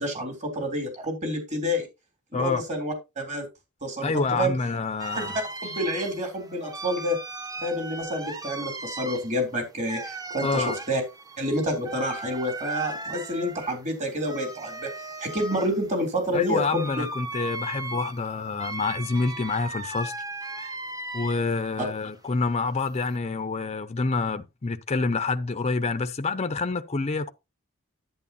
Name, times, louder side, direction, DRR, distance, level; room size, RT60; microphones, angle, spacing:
voice 1, 0.0-1.8 2.3-3.5 3.8-4.5 5.2-5.3 5.6-7.2 7.6-11.0 11.4-14.9 15.2-17.0, equal, 35° right, 3.3 m, -28 dB
voice 2, 2.3-2.6 4.0-5.4 10.4-10.8 16.3-20.1 21.1-27.3, left 3 dB, 30° left, 0.6 m, -27 dB
sound 1, 5.0-21.7 22.0-23.2, right 2 dB, 15° right, 0.9 m, -37 dB
11.0 x 9.0 x 2.8 m
head